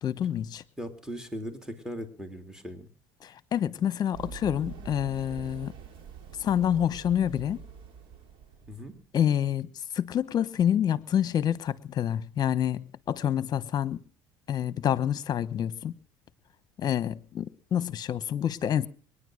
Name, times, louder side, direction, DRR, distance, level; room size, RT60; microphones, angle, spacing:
voice 1, 0.0-0.6 3.2-5.7 6.4-7.6 9.1-9.7 9.9-14.0 14.5-15.9 16.8-18.9, left 9 dB, 40° left, 1.1 m, -27 dB
voice 2, 0.8-2.9 8.7-8.9, equal, 5° right, 3.1 m, -38 dB
Run, 4.1-8.9, right 6 dB, 60° right, 3.4 m, -45 dB
22.0 x 10.0 x 6.4 m
hypercardioid pair, 80°, 10 cm